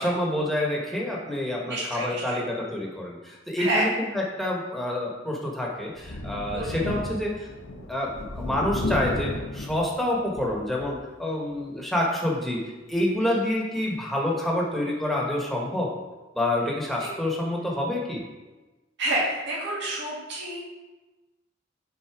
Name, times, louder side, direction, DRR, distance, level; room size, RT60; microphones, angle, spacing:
voice 1, 0.0-7.5 7.9-12.6 12.9-15.9 16.3-18.2, left 1 dB, ahead, -3 dB, 1.3 m, -27 dB
voice 2, 1.7-2.4 3.6-3.9 6.5-6.8 19.0-20.6, right 1 dB, 60° right, -6 dB, 2.2 m, -28 dB
Thunder, 6.0-11.1 11.5-11.6 12.9-13.0, left 1 dB, 80° left, 1.1 m, -33 dB
9.4 x 3.9 x 4.8 m, 1.2 s
head